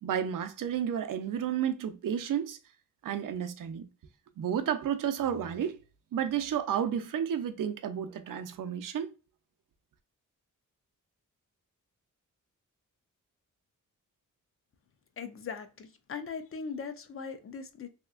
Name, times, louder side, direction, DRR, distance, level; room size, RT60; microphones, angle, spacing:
voice 1, 0.0-2.6 3.0-3.9 4.4-5.8 6.1-9.1, right 9 dB, 75° right, 0.5 m, -31 dB
voice 2, 15.2-17.9, left 5 dB, 45° left, 0.4 m, -40 dB
3.2 x 2.8 x 2.3 m
wide cardioid pair, 175°, 33 cm